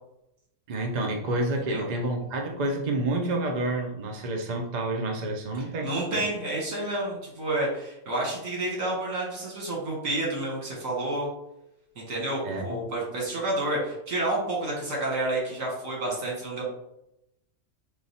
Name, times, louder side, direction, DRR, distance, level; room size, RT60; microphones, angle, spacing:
voice 1, 0.7-6.2 12.4-12.8, right 2 dB, 50° right, 2 dB, 0.5 m, -29 dB
voice 2, 5.8-11.3 12.0-16.6, right 2 dB, 70° right, -3 dB, 1.9 m, -29 dB
4.7 x 2.3 x 4.1 m, 0.85 s
omnidirectional pair, 1.5 m